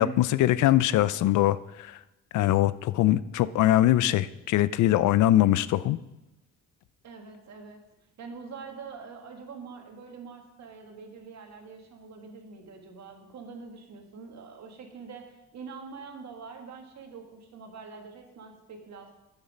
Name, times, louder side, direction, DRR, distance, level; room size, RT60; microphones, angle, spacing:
voice 1, 0.0-2.0 2.3-6.0, left 14 dB, 75° left, 17 dB, 0.5 m, -22 dB
voice 2, 7.0-7.8 8.2-19.1, right 5 dB, 65° right, 3 dB, 1.9 m, -44 dB
9.8 x 7.2 x 5.4 m, 0.97 s
cardioid pair, 90°, 30 cm